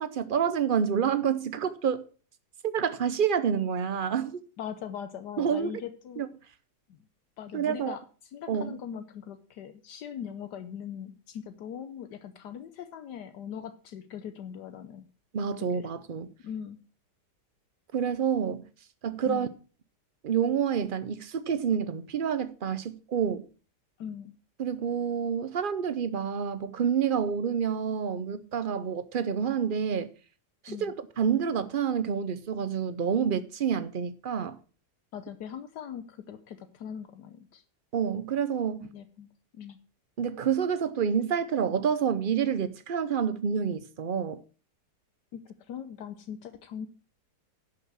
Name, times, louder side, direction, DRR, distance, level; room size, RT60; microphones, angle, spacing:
voice 1, 0.0-2.0 2.6-4.4 5.4-5.7 6.2-6.3 7.5-8.0 8.5-8.8 15.3-16.3 17.9-18.7 19.0-19.5 20.2-23.5 24.6-30.1 30.6-34.6 37.9-38.9 40.2-44.4, right 7 dB, 65° right, 0.5 m, -28 dB
voice 2, 4.6-6.2 7.4-8.0 8.3-15.1 15.7-15.9 16.4-16.8 19.3-19.5 24.0-24.3 30.7-30.9 35.1-37.6 38.9-39.3 39.5-39.8 45.3-45.4 45.7-46.9, left 8 dB, 75° left, 1.4 m, -40 dB
11.0 x 6.0 x 6.0 m
omnidirectional pair, 1.8 m